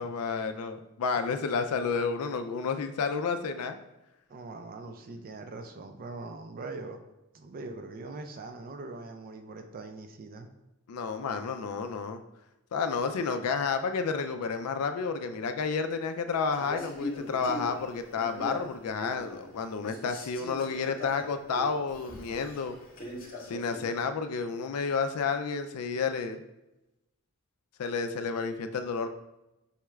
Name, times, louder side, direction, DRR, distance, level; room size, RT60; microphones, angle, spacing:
voice 1, 0.0-3.8 10.9-12.2 12.7-22.8 23.5-26.4 27.8-29.1, left 5 dB, 80° left, 8 dB, 0.4 m, -31 dB
voice 2, 4.3-7.0 7.3-10.5, right 3 dB, 40° right, 6 dB, 0.4 m, -42 dB
Male speech man speaking, 16.5-19.5 19.8-23.9, left 1 dB, 40° left, 0.9 m, -41 dB
5.6 x 2.3 x 3.1 m, 0.95 s
head